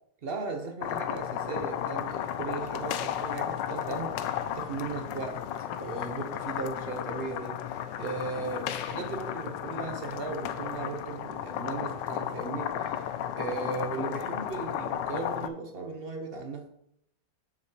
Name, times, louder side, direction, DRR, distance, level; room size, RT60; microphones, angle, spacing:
voice 1, 0.2-5.5 5.8-16.7, right 4 dB, 75° right, 5 dB, 0.5 m, -37 dB
sound 1, 0.8-15.5, left 10 dB, 75° left, 1.2 m, -34 dB
7.3 x 6.2 x 4.4 m, 0.73 s
omnidirectional pair, 2.1 m